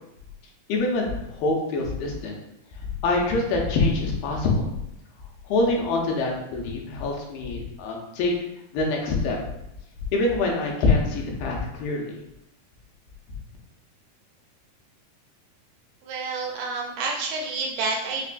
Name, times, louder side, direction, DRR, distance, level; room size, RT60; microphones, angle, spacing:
voice 1, 0.7-2.4 2.8-4.7 5.5-8.3 8.7-9.4 10.1-12.2, left 3 dB, 80° left, -1 dB, 2.4 m, -25 dB
voice 2, 16.0-18.3, right 3 dB, 80° right, 0 dB, 2.0 m, -29 dB
5.7 x 2.2 x 2.4 m, 0.86 s
omnidirectional pair, 3.9 m